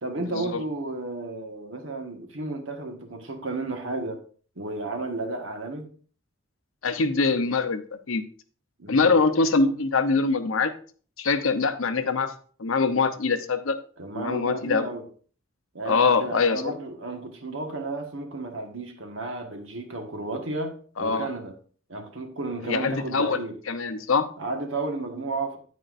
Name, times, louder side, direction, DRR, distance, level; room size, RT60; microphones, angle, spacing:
voice 1, 0.0-4.2 4.6-5.9 8.8-9.1 14.0-15.0 15.7-21.6 21.9-23.5 24.4-25.6, right 2 dB, 65° right, 1.5 m, -33 dB
voice 2, 6.8-7.8 8.1-8.2 8.9-10.7 11.2-12.3 12.6-13.8 14.1-14.9 15.9-16.7 21.0-21.3 22.7-23.4 23.7-24.3, left 4 dB, 75° left, 0.8 m, -23 dB
9.5 x 9.1 x 2.6 m
head